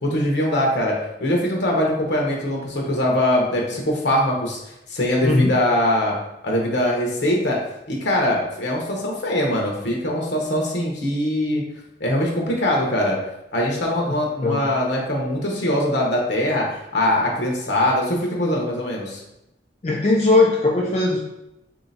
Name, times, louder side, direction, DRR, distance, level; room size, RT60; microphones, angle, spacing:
voice 1, 0.0-4.6 4.9-6.1 6.4-7.6 7.9-11.6 12.0-13.2 13.5-16.7 16.9-19.2, left 1 dB, 85° left, -1 dB, 1.0 m, -22 dB
voice 2, 19.8-21.2, left 2 dB, 35° left, -1 dB, 0.4 m, -18 dB
3.2 x 2.9 x 4.0 m, 0.87 s
head